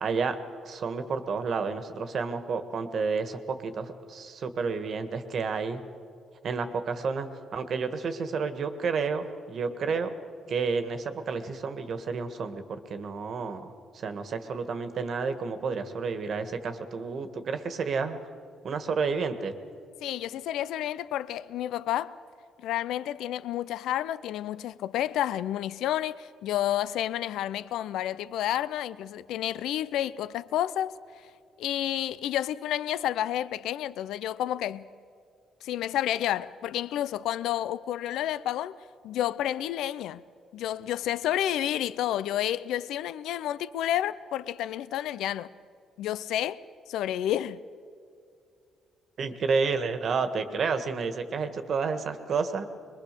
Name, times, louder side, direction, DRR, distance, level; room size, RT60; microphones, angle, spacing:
voice 1, 0.0-0.4 0.6-5.8 6.4-10.2 10.5-18.2 18.6-19.5 49.2-52.6, right 5 dB, 55° right, 1.6 m, -30 dB
voice 2, 20.0-22.1 22.6-30.9 31.6-34.9 35.6-38.7 39.0-40.2 40.5-45.5 46.0-46.6 46.9-47.6, left 12 dB, 85° left, 0.5 m, -30 dB
23.5 x 21.5 x 6.8 m
cardioid pair, 90°, 0 cm